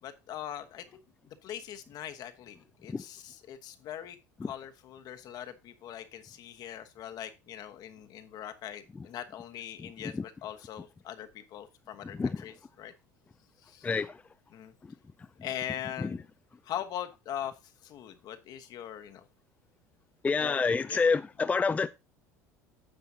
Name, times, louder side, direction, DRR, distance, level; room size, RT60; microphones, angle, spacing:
voice 1, 0.0-1.0 1.3-12.9 13.6-13.9 14.5-14.7 15.4-16.3 16.6-17.5 17.8-19.3 20.4-20.6 20.9-21.2, left 10 dB, 55° left, 1.1 m, -41 dB
voice 2, 13.8-14.2 16.0-16.1 20.2-21.9, left 4 dB, 15° left, 0.4 m, -27 dB
9.8 x 6.9 x 2.8 m
hypercardioid pair, 80°, 8 cm